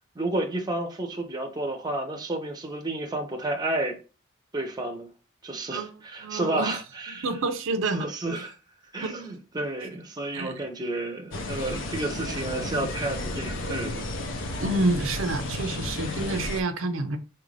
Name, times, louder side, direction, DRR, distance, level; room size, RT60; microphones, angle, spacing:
voice 1, 0.2-4.0 4.5-5.1 5.4-7.3 7.9-8.5 8.9-14.1, right 2 dB, 20° right, 0.6 m, -31 dB
voice 2, 6.2-6.8 7.1-8.1 9.0-9.2 10.3-10.6 14.6-17.2, right 2 dB, 75° right, 0.5 m, -28 dB
sound 1, 11.3-16.6, left 2 dB, 65° left, 0.6 m, -32 dB
4.4 x 2.5 x 3.2 m
head